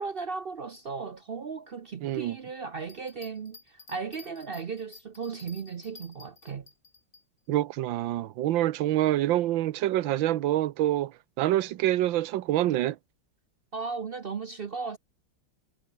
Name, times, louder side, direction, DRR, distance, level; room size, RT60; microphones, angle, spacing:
voice 1, 0.0-6.7 13.7-15.0, right 5 dB, 65° right, 0.5 m, -36 dB
voice 2, 2.0-2.4 7.5-13.0, right 14 dB, 80° right, 1.6 m, -26 dB
Bell, 2.8-7.2 7.7-7.8, left 4 dB, 40° left, 2.9 m, -52 dB
omnidirectional pair, 2.1 m